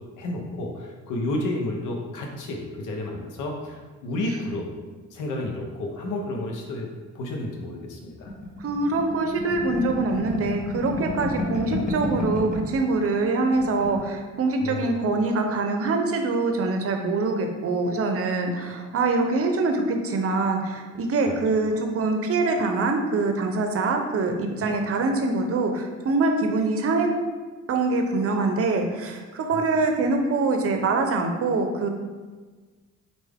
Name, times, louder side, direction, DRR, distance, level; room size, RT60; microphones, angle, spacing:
voice 1, 0.0-4.8 5.1-8.3 14.6-14.9 21.3-21.4 21.7-21.8 24.6-24.7 28.3-28.6 29.5-29.6, left 1 dB, 85° left, 1 dB, 0.8 m, -31 dB
sound 1, 8.3-12.8 13.1-13.2 13.5-14.1, left 1 dB, 25° left, 0.8 m, -31 dB
voice 2, 8.6-27.1 27.7-31.9, right 3 dB, 50° right, 4 dB, 0.6 m, -24 dB
4.6 x 2.6 x 3.5 m, 1.4 s
cardioid pair, 90°, 30 cm